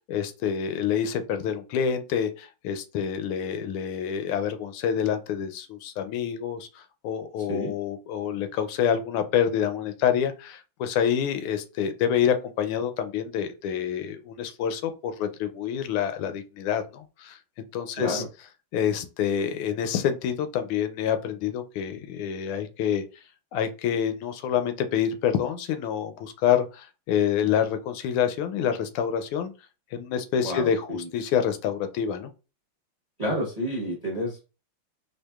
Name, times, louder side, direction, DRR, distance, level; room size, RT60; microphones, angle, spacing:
voice 1, 0.1-17.4 17.7-18.2 18.7-23.0 23.5-29.5 29.9-32.3, left 8 dB, 90° left, 9 dB, 1.5 m, -27 dB
voice 2, 30.4-31.1 33.2-34.4, equal, 30° right, -3 dB, 0.8 m, -30 dB
4.5 x 2.5 x 2.3 m, 0.32 s
omnidirectional pair, 2.3 m